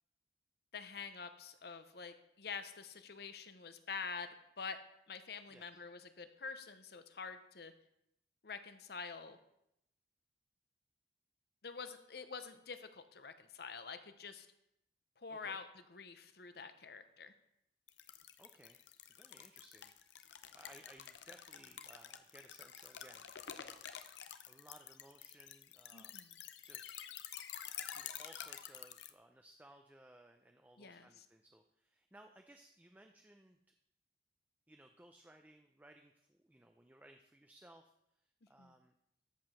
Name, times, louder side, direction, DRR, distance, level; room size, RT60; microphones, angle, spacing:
voice 1, 0.7-4.8 5.1-7.7 8.4-9.4 11.6-14.5 15.2-17.3 25.9-26.4 30.8-31.3 38.6-38.7, left 5 dB, 60° left, 10 dB, 0.8 m, -47 dB
voice 2, 5.5-5.8 15.3-15.6 18.4-18.8 19.2-19.9 20.5-23.8 24.5-26.2 26.6-27.1 27.9-33.6 34.7-37.9 38.5-38.9, right 1 dB, 10° right, 5 dB, 0.5 m, -61 dB
sound 1, 17.9-29.1, left 10 dB, 90° left, 0.7 m, -49 dB
13.5 x 5.0 x 5.7 m, 0.80 s
head